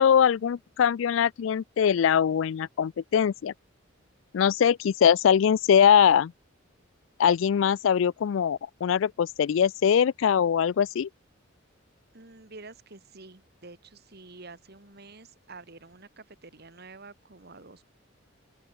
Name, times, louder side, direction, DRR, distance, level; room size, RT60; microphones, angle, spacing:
voice 1, 0.0-3.5 4.3-6.3 7.2-11.1, left 8 dB, 70° left, 0.3 m, -22 dB
voice 2, 12.1-17.8, right 3 dB, 50° right, 2.2 m, -48 dB
open air
head